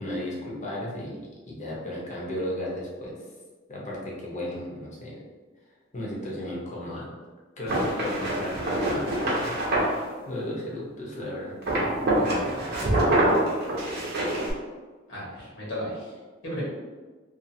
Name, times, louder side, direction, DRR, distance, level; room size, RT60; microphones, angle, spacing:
voice 1, 0.0-3.1 3.7-5.2 5.9-7.1 7.6-9.5 10.3-11.6 16.5-16.6, left 1 dB, 40° left, -4 dB, 0.7 m, -34 dB
sound 1, 7.7-10.0 11.6-14.5, right 1 dB, 55° right, 0.7 m, -25 dB
voice 2, 12.1-12.6 15.1-16.6, equal, 70° left, -6 dB, 1.1 m, -36 dB
2.6 x 2.5 x 2.6 m, 1.4 s
head